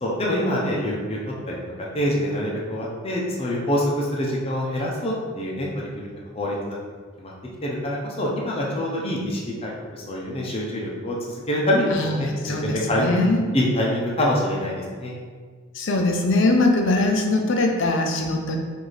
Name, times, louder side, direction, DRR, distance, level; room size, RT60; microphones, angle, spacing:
voice 1, 0.0-1.6 1.9-6.1 6.3-6.8 7.2-7.3 7.6-13.3 13.5-15.2, left 1 dB, 30° left, -3 dB, 0.7 m, -25 dB
voice 2, 11.9-13.5 15.7-18.6, left 2 dB, 65° left, 2 dB, 0.6 m, -22 dB
4.8 x 2.7 x 4.0 m, 1.6 s
head